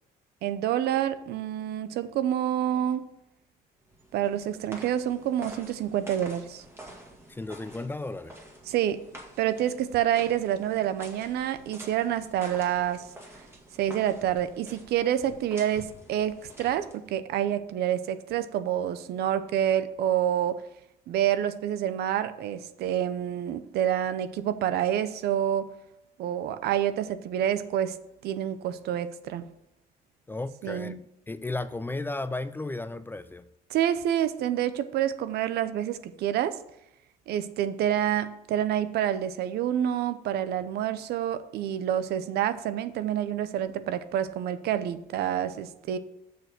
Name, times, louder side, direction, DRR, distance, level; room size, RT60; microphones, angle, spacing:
voice 1, 0.4-3.1 4.1-6.6 8.7-9.0 9.4-13.0 13.8-20.6 21.1-25.7 26.2-28.0 28.2-29.5 30.6-31.0 33.7-36.6 37.3-46.0, right 10 dB, 75° right, 13 dB, 0.7 m, -28 dB
sound 1, 3.9-17.2, right 1 dB, 15° right, 1.9 m, -48 dB
voice 2, 7.3-8.3 30.3-33.5, left 2 dB, 10° left, 14 dB, 0.4 m, -34 dB
6.8 x 6.6 x 6.0 m, 0.82 s
cardioid pair, 110°, 17 cm